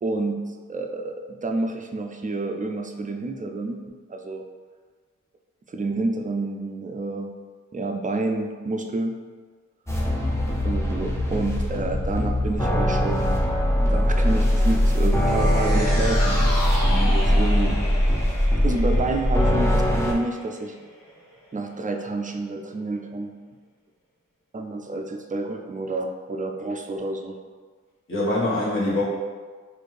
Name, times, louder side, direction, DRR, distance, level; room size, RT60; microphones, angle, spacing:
voice 1, 0.0-3.8 4.1-4.4 5.7-7.3 7.7-9.1 10.6-13.4 13.8-17.8 18.6-20.7 21.5-23.3 24.5-27.4, right 2 dB, 25° right, 4 dB, 0.3 m, -29 dB
sound 1, 9.9-20.1, equal, 10° left, 0.7 m, -21 dB
sound 2, 15.0-21.4 21.8-21.9, left 1 dB, 90° left, 0.9 m, -34 dB
voice 2, 28.1-29.0, left 1 dB, 40° left, -9 dB, 1.4 m, -24 dB
4.2 x 2.6 x 3.3 m, 1.5 s
wide cardioid pair, 80°, 31 cm